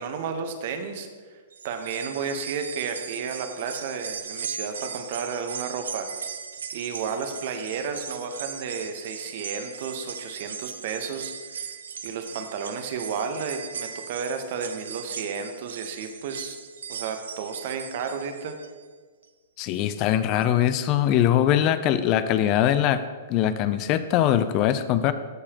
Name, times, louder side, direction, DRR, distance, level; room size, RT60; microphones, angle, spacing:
voice 1, 0.0-1.4 1.6-6.1 6.7-11.6 12.0-16.6 16.9-18.6, right 6 dB, 55° right, 7 dB, 0.9 m, -32 dB
sound 1, 1.5-18.8 19.2-19.3 20.4-20.5, right 6 dB, 80° right, 0.5 m, -38 dB
voice 2, 19.6-23.0 23.3-25.1, left 11 dB, 40° left, 13 dB, 0.4 m, -22 dB
14.5 x 4.8 x 2.9 m, 1.5 s
hypercardioid pair, 120°, 0 cm